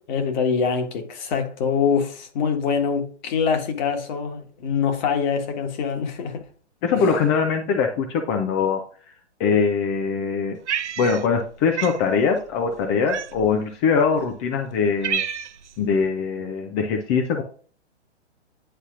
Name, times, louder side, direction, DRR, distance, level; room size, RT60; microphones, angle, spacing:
voice 1, 0.1-6.5 6.9-7.0, left 6 dB, 40° left, 1.4 m, -24 dB
voice 2, 6.8-8.8 9.4-10.6 11.0-15.2 15.8-17.4, left 5 dB, 15° left, 0.4 m, -22 dB
Cat, 10.7-11.5 11.8-12.0 13.1-13.6 14.3-14.4 14.7-15.7, right 8 dB, 75° right, 0.7 m, -28 dB
10.0 x 4.0 x 2.4 m
hypercardioid pair, 125°, 35 cm